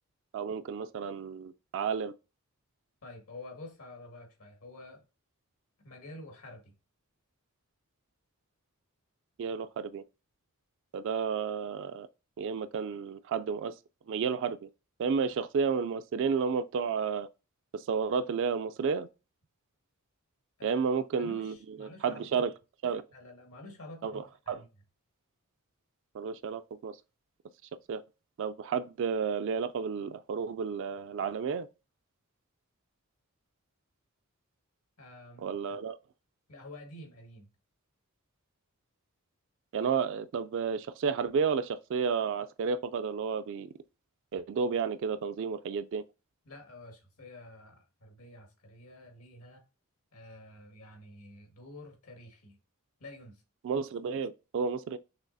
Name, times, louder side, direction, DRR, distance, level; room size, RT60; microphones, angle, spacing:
voice 1, 0.3-2.1 9.4-10.0 10.9-12.1 12.4-13.8 14.1-14.7 15.0-17.3 17.7-19.1 20.6-22.5 22.8-23.0 24.0-24.2 24.5-24.6 26.1-27.0 27.9-28.0 28.4-31.7 35.4-36.0 39.7-43.7 44.3-46.0 53.6-55.0, right 6 dB, 60° right, 0.3 m, -31 dB
voice 2, 3.0-5.0 5.8-6.7 20.6-20.8 21.2-22.5 23.1-24.7 35.0-35.8 36.5-37.5 46.5-49.6 50.1-52.6 53.0-53.4, left 2 dB, 80° left, 1.8 m, -49 dB
6.1 x 3.3 x 2.6 m
head